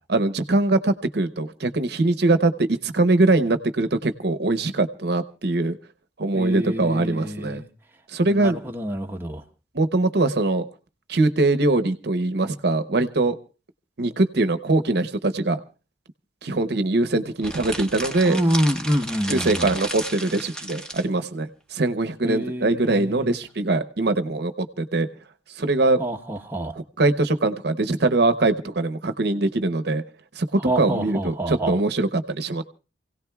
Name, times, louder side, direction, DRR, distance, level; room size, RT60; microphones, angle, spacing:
voice 1, 0.1-5.8 6.2-7.6 8.1-8.6 9.7-10.7 11.1-13.3 14.0-15.6 16.4-18.4 19.3-25.1 25.6-26.0 26.8-30.0 30.4-32.6, right 2 dB, 65° right, 10 dB, 0.8 m, -22 dB
voice 2, 6.3-7.7 8.2-9.4 18.3-19.8 22.2-23.4 26.0-26.8 30.6-31.8, right 1 dB, 10° right, 1 dB, 1.0 m, -27 dB
sound 1, 17.4-21.1, right 1 dB, 5° left, 1.2 m, -33 dB
28.5 x 17.0 x 2.3 m, 0.33 s
head